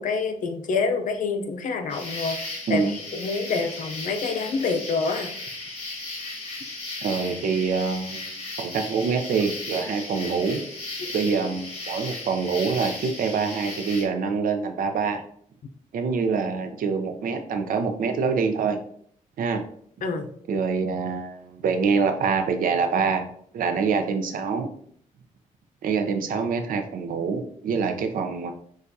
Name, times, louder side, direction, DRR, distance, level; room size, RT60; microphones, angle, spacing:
voice 1, 0.0-2.8 3.1-5.3 11.0-11.1 20.0-20.3, left 4 dB, 70° left, 6 dB, 0.6 m, -27 dB
sound 1, 1.9-14.0, left 2 dB, 45° left, 1.6 m, -36 dB
voice 2, 7.0-10.6 11.1-15.2 15.9-18.8 19.4-19.6 20.5-23.3 23.5-24.7 25.8-28.5, right 5 dB, 80° right, 6 dB, 0.6 m, -25 dB
6.5 x 2.4 x 2.7 m, 0.63 s
cardioid pair, 100°, 14 cm